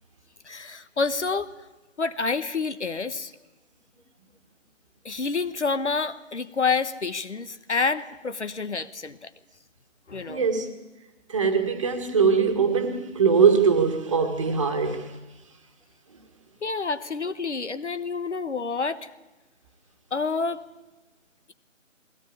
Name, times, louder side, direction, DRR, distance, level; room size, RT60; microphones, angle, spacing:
voice 1, 0.4-1.5 2.0-3.3 5.0-9.3 10.1-10.4 16.6-19.1 20.1-20.6, left 4 dB, 65° left, 12 dB, 1.3 m, -28 dB
voice 2, 10.3-10.7 11.3-15.2 16.1-16.2, right 5 dB, 25° right, 5 dB, 1.8 m, -22 dB
21.0 x 17.5 x 8.5 m, 1.1 s
figure-of-eight pair, 160°, 38 cm